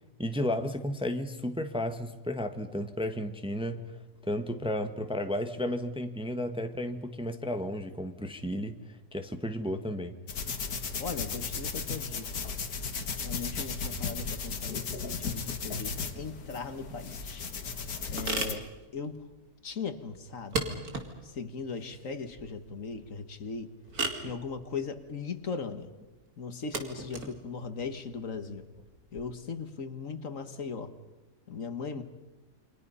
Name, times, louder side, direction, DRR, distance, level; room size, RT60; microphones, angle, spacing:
voice 1, 0.2-3.9 4.3-8.8 9.1-10.1, left 1 dB, 5° right, 7 dB, 1.2 m, -33 dB
sound 1, 10.3-18.5, left 5 dB, 80° left, 2.0 m, -35 dB
voice 2, 11.0-12.5 13.2-17.4 18.1-18.7 18.9-19.2 19.6-20.7 21.2-23.7 24.2-25.9 26.4-28.7 29.1-30.9 31.5-32.0, left 5 dB, 60° left, 10 dB, 1.7 m, -38 dB
sound 2, 16.9-29.2, right 3 dB, 75° right, 3.0 m, -39 dB
29.0 x 25.5 x 5.6 m, 1.1 s
omnidirectional pair, 1.6 m